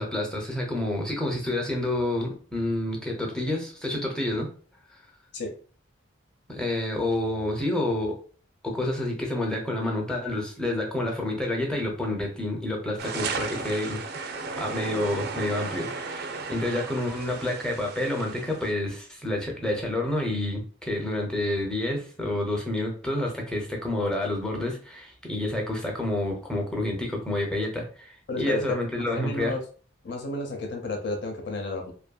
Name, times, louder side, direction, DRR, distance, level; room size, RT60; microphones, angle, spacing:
voice 1, 0.0-4.5 4.9-5.0 6.5-8.2 8.6-14.0 14.6-29.6, left 1 dB, 5° left, 0 dB, 0.6 m, -29 dB
sound 1, 13.0-18.7, right 4 dB, 55° right, 0.4 m, -35 dB
voice 2, 28.3-28.6 29.1-29.6 30.0-31.9, left 2 dB, 60° left, 2 dB, 0.6 m, -32 dB
2.6 x 2.6 x 2.2 m, 0.41 s
head